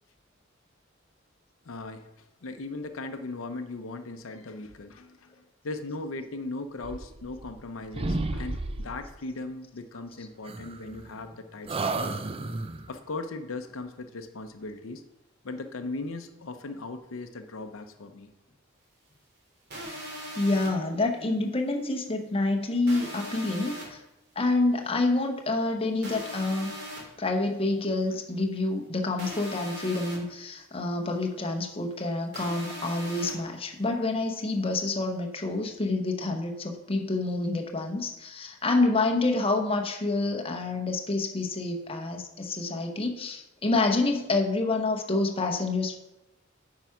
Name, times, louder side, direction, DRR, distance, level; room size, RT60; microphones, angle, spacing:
voice 1, 1.7-2.1 2.4-5.3 5.6-12.1 12.9-15.0 15.4-18.3, left 3 dB, 90° left, 7 dB, 0.7 m, -38 dB
sound 1, 6.8-7.7 7.9-9.1 10.4-11.3 11.7-12.9, right 2 dB, 30° right, 0.5 m, -33 dB
sound 2, 19.7-20.7 22.9-23.8 26.0-27.0 29.2-30.2 32.3-33.3, equal, 55° right, 2.9 m, -39 dB
voice 2, 20.3-24.0 24.4-26.7 27.2-46.0, left 2 dB, 30° left, 3 dB, 0.9 m, -28 dB
9.1 x 4.8 x 5.8 m, 0.94 s
head